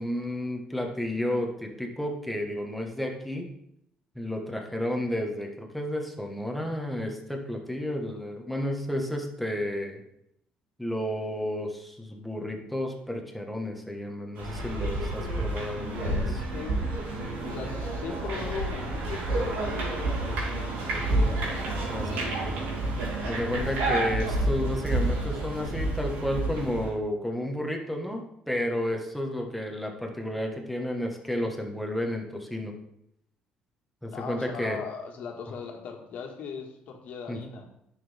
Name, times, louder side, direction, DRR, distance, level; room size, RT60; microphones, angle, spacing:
voice 1, 0.0-3.5 4.1-10.0 10.8-16.4 21.9-22.2 23.2-32.7 34.0-34.8 37.3-37.4, left 1 dB, ahead, 1 dB, 1.5 m, -32 dB
sound 1, 14.4-26.9, right 2 dB, 90° right, 3.6 m, -29 dB
sound 2, 14.5-26.6, right 3 dB, 60° right, 3.6 m, -44 dB
voice 2, 15.9-17.0 17.4-22.7 34.1-37.7, left 5 dB, 65° left, 2 dB, 1.8 m, -39 dB
11.0 x 6.5 x 3.6 m, 0.78 s
cardioid pair, 110°, 3 cm